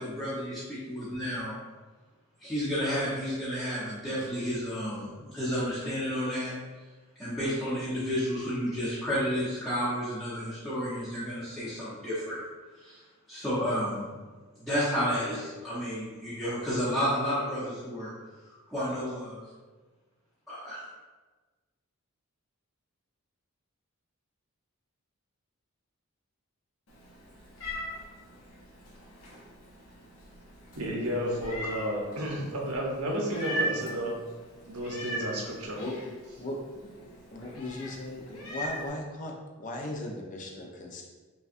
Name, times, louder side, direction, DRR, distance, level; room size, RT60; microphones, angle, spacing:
voice 1, 0.0-1.6 2.4-6.5 7.2-12.4 12.8-13.0 13.3-14.2 14.6-18.1 18.7-19.4 20.5-20.8, equal, ahead, -14 dB, 0.9 m, -31 dB
Meow, 26.9-38.9, right 1 dB, 70° left, 0.9 m, -40 dB
voice 2, 30.7-34.2 34.7-35.8, equal, 85° right, -2 dB, 0.9 m, -32 dB
voice 3, 35.8-36.6 36.8-36.9 37.3-41.0, left 1 dB, 35° left, 1 dB, 0.5 m, -38 dB
5.4 x 2.3 x 2.6 m, 1.3 s
head